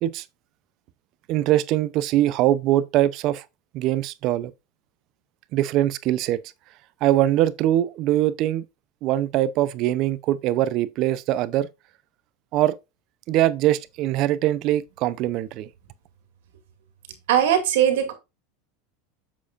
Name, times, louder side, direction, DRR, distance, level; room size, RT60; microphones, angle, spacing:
voice 1, 1.3-3.4 3.7-4.5 5.5-6.4 7.0-8.6 9.0-11.7 12.5-12.8 13.3-15.7, right 13 dB, 50° right, 0.6 m, -22 dB
voice 2, 17.3-18.1, right 10 dB, 80° right, 2.2 m, -19 dB
7.4 x 7.0 x 2.5 m
supercardioid pair, 125°, 0 cm